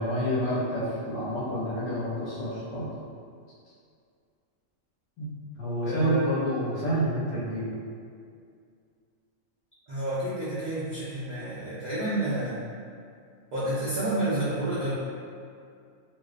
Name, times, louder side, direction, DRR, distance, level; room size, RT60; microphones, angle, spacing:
voice 1, 0.0-2.9 5.2-7.8, right 1 dB, 80° left, -8 dB, 1.1 m, -29 dB
voice 2, 5.8-6.3 9.9-12.6 13.5-14.9, right 1 dB, 80° right, -10 dB, 0.4 m, -29 dB
2.6 x 2.0 x 2.3 m, 2.3 s
omnidirectional pair, 1.3 m